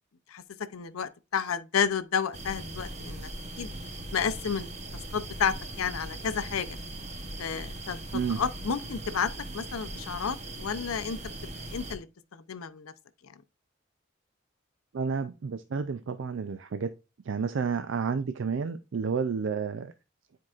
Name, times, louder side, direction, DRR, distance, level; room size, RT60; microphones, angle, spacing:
voice 1, 0.7-3.3 3.6-3.7 4.1-4.7 5.1-6.8 7.4-11.2 11.6-12.1 12.3-12.9, left 7 dB, 90° left, 0.6 m, -31 dB
sound 1, 2.3-12.0, right 1 dB, 30° right, 0.9 m, -40 dB
voice 2, 14.9-16.9 17.2-19.9, right 5 dB, 65° right, 0.4 m, -30 dB
9.8 x 4.6 x 2.4 m
head